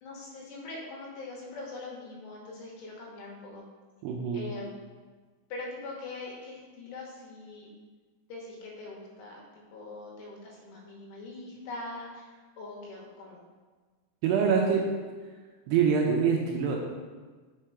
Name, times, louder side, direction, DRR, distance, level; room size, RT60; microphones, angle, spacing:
voice 1, 0.0-3.6 4.3-4.7 5.5-7.7 8.3-13.4, left 2 dB, 75° left, -2 dB, 3.2 m, -42 dB
voice 2, 4.0-4.4 14.2-14.8 15.7-16.8, right 6 dB, 80° right, 0 dB, 2.6 m, -25 dB
6.5 x 4.4 x 4.9 m, 1.4 s
omnidirectional pair, 5.1 m